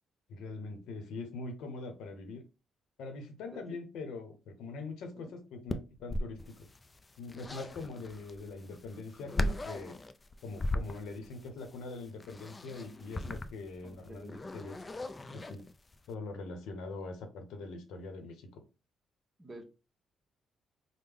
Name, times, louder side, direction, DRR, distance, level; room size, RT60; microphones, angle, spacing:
voice 1, 0.3-2.4 3.0-6.7 7.2-10.0 10.4-14.8 15.3-15.6 16.1-18.6, left 3 dB, 85° left, 0.8 m, -43 dB
sound 1, 5.7-16.1, left 1 dB, 25° left, 0.3 m, -38 dB
voice 2, 13.8-14.4 19.4-19.6, right 1 dB, 25° right, 0.9 m, -50 dB
3.5 x 2.1 x 3.4 m
cardioid pair, 90°, 0 cm